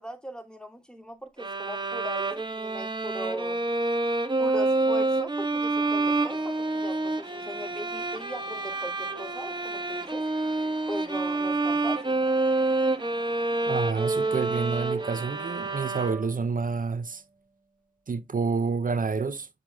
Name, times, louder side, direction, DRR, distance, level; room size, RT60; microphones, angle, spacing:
voice 1, 0.0-3.6 4.4-6.5 6.8-10.2 10.9-12.3, equal, 5° left, 2.8 m, -39 dB
sound 1, 1.4-16.5, right 2 dB, 30° right, 1.4 m, -28 dB
sound 2, 5.7-16.1, right 2 dB, 55° right, 3.8 m, -49 dB
voice 2, 13.7-17.2 18.1-19.5, right 5 dB, 70° right, 0.6 m, -28 dB
8.6 x 6.1 x 2.3 m
cardioid pair, 40°, 14 cm